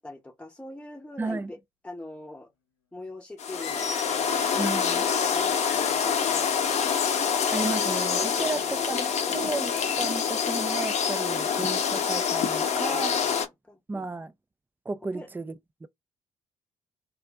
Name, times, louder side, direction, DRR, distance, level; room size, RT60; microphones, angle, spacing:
voice 1, 0.0-1.6 1.8-2.5 2.9-4.5 5.3-6.8 8.3-8.6 12.8-13.4 13.7-14.1 15.1-15.3, left 2 dB, 5° left, 0.8 m, -43 dB
voice 2, 1.2-1.5 4.5-5.1 7.5-13.2 13.9-14.3 14.9-15.5 15.8-15.9, right 3 dB, 15° right, 0.4 m, -33 dB
sound 1, 3.4-13.5, left 7 dB, 50° left, 0.7 m, -26 dB
sound 2, 3.5-4.3 4.5-5.3 5.6-6.1, left 6 dB, 85° left, 0.6 m, -45 dB
2.5 x 2.2 x 3.4 m
figure-of-eight pair, 45°, 15 cm